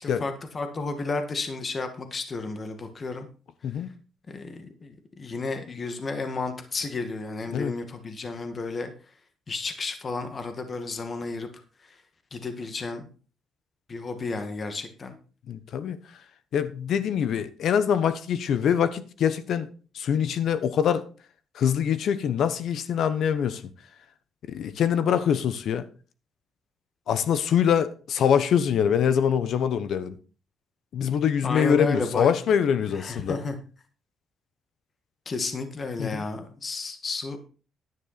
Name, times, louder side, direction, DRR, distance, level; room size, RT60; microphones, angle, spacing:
voice 1, 0.0-3.3 4.3-8.9 9.5-11.5 11.8-11.9 12.3-13.1 13.9-15.2 31.4-32.3 32.9-33.6 35.3-37.4, left 3 dB, 40° left, 2.0 m, -32 dB
voice 2, 15.5-16.0 16.5-19.7 19.9-21.1 21.5-23.6 24.5-25.8 27.1-30.2 30.9-33.4 36.0-36.3, left 8 dB, 70° left, 1.2 m, -24 dB
11.0 x 9.3 x 4.3 m
cardioid pair, 90°, 0 cm